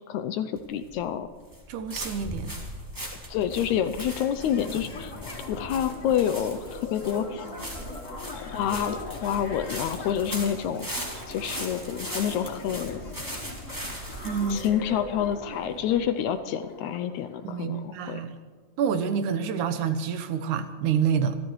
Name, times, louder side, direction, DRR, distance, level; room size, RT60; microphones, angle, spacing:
voice 1, 0.1-1.3 3.3-5.1 5.5-7.4 8.3-10.9 11.3-13.0 14.5-18.2, left 9 dB, 80° left, 9 dB, 1.9 m, -28 dB
sound 1, 0.6-16.1, equal, 10° right, 1.8 m, -39 dB
voice 2, 1.7-2.5 14.2-14.8 17.4-18.3 18.8-21.4, right 7 dB, 80° right, 9 dB, 2.3 m, -27 dB
sound 2, 3.5-18.1, left 2 dB, 45° left, 0.9 m, -41 dB
Telephone, 7.2-8.6 10.3-14.6, left 1 dB, 30° left, 3.2 m, -48 dB
26.0 x 13.5 x 3.1 m, 1.5 s
omnidirectional pair, 3.6 m